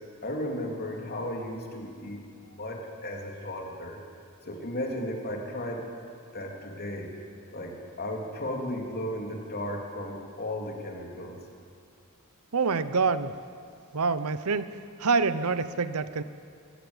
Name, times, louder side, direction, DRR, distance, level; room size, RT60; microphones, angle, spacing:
voice 1, 0.2-4.0 4.4-5.9 6.3-7.1 7.5-11.4, left 1 dB, 45° left, 0 dB, 3.1 m, -35 dB
voice 2, 12.5-13.3 13.9-16.2, right 4 dB, 75° right, 13 dB, 0.8 m, -26 dB
24.0 x 14.0 x 8.1 m, 2.3 s
head